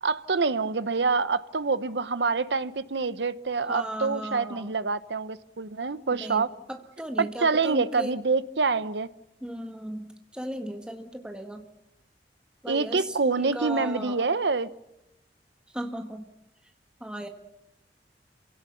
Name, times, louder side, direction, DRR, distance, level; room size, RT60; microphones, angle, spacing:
voice 1, 0.0-6.5 7.2-9.1 12.7-14.7, right 4 dB, 85° right, 14 dB, 0.9 m, -26 dB
voice 2, 3.6-4.7 6.1-8.2 9.4-11.7 12.6-14.2 15.7-16.3 17.0-17.3, right 1 dB, 5° right, 4 dB, 1.7 m, -36 dB
28.0 x 17.0 x 7.1 m, 0.90 s
head